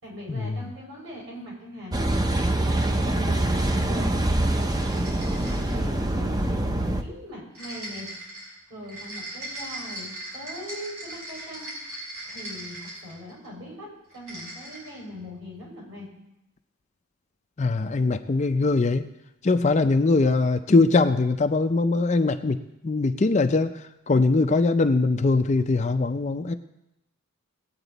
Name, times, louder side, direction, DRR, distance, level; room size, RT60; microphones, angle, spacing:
voice 1, 0.0-2.0 2.6-4.7 5.2-6.6 7.0-8.1 8.7-11.7 12.2-16.1, equal, 55° right, -3 dB, 5.4 m, -40 dB
Car passing by / Idling / Accelerating revving vroom, 1.9-7.0, right 1 dB, 15° right, 0.6 m, -24 dB
sound 1, 4.7-5.8 7.5-13.5 14.1-15.0, right 1 dB, 80° right, 5.4 m, -39 dB
voice 2, 17.6-19.1 19.4-22.6 22.8-26.5, left 3 dB, 30° left, 8 dB, 0.4 m, -22 dB
19.0 x 8.8 x 4.0 m, 0.90 s
head